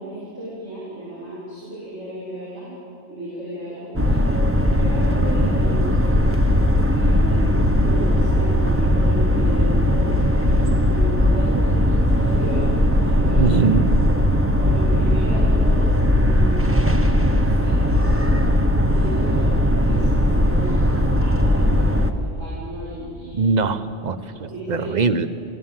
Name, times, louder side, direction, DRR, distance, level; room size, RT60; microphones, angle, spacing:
voice 1, 0.0-2.7 3.1-4.3 4.7-6.2 6.9-13.8 14.5-18.5 18.8-23.6 24.2-25.1, right 1 dB, 75° right, -10 dB, 7.2 m, -34 dB
sound 1, 3.9-22.1, equal, 10° right, 1.0 m, -18 dB
voice 2, 13.4-13.9 23.3-25.3, right 4 dB, 40° right, 11 dB, 1.0 m, -21 dB
29.0 x 16.5 x 7.6 m, 2.6 s
omnidirectional pair, 1.3 m